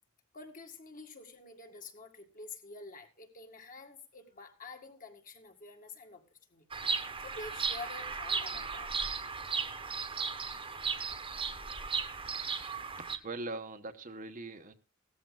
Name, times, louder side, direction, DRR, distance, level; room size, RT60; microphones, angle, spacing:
voice 1, 0.3-8.9, left 3 dB, 40° left, 4 dB, 1.9 m, -48 dB
Bird vocalization bird call bird song, 6.7-13.2, right 5 dB, 25° right, 1.2 m, -36 dB
voice 2, 13.0-14.7, right 2 dB, 40° right, 7 dB, 1.0 m, -41 dB
17.0 x 14.0 x 2.3 m, 0.31 s
head